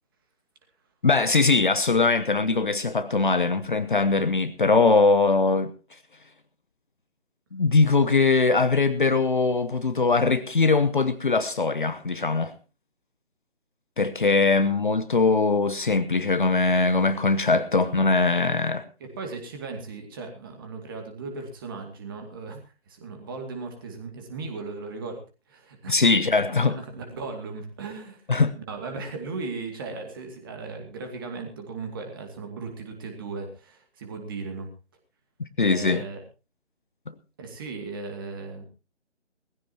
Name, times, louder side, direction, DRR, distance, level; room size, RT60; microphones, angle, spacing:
voice 1, 1.0-5.7 7.5-12.5 14.0-18.8 25.9-26.8 28.3-28.5 35.4-36.0 37.1-37.2, left 3 dB, 45° left, 1.0 m, -21 dB
voice 2, 19.0-25.2 25.5-26.1 26.7-28.2 28.6-34.7 35.6-36.2 37.4-38.7, right 4 dB, 20° right, 2.4 m, -37 dB
20.5 x 15.5 x 2.9 m
figure-of-eight pair, 155°, 35 cm